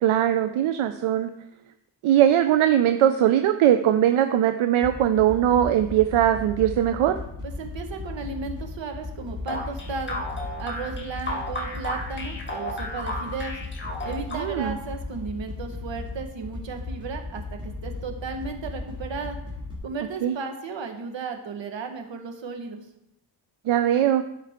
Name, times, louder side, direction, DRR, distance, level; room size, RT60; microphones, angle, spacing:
voice 1, 0.0-1.3 2.0-7.2 14.3-14.8 20.2-20.3 23.7-24.2, right 11 dB, 85° right, 9 dB, 0.6 m, -20 dB
sound 1, 4.8-19.8, left 3 dB, 10° right, 2.3 m, -36 dB
voice 2, 7.4-10.2 10.6-13.6 14.0-19.4 19.8-22.8, right 4 dB, 65° right, 5 dB, 1.4 m, -35 dB
sound 2, 9.5-14.8, left 1 dB, 25° left, 1.5 m, -33 dB
12.5 x 4.7 x 3.6 m, 0.82 s
wide cardioid pair, 155°, 48 cm